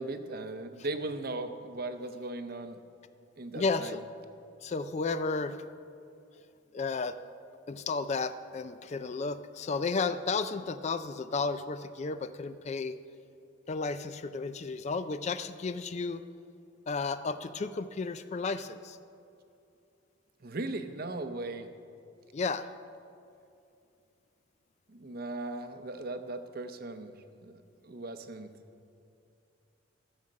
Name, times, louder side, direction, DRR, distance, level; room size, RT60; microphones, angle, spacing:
voice 1, 0.0-2.8 3.4-4.0 20.4-21.7 24.9-28.5, right 2 dB, 50° right, 9 dB, 0.7 m, -38 dB
voice 2, 3.6-4.0 4.6-5.6 6.7-7.2 7.7-13.0 13.7-16.2 16.9-19.0 22.3-22.7, left 4 dB, 35° left, 12 dB, 0.3 m, -33 dB
14.5 x 7.2 x 6.4 m, 2.6 s
head